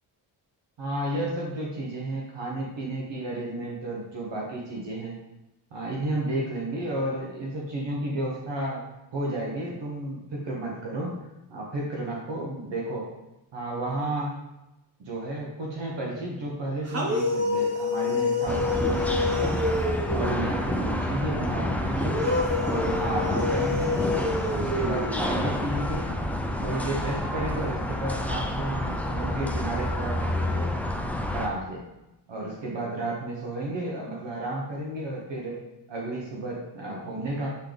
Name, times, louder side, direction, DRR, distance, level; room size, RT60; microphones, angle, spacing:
voice 1, 0.8-5.1 5.7-8.8 9.1-11.2 11.5-13.1 13.5-14.4 15.0-19.6 20.1-22.2 22.6-24.1 24.5-26.1 26.6-30.7 31.3-31.8 32.3-35.6 35.9-37.6, right 1 dB, 65° right, -3 dB, 1.4 m, -32 dB
sound 1, 16.9-20.6 21.9-25.6, left 3 dB, 35° right, 1.5 m, -28 dB
sound 2, 18.5-31.5, left 1 dB, 5° left, 0.5 m, -29 dB
8.0 x 3.8 x 3.5 m, 0.96 s
cardioid pair, 95°, 46 cm